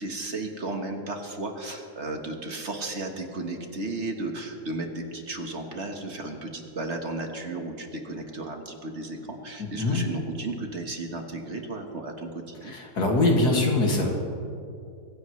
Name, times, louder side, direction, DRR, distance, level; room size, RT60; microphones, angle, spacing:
voice 1, 0.0-12.7, right 2 dB, 45° right, 3 dB, 1.5 m, -34 dB
voice 2, 12.6-14.1, left 2 dB, 80° left, 0 dB, 2.7 m, -23 dB
23.5 x 15.5 x 3.2 m, 2.5 s
omnidirectional pair, 1.7 m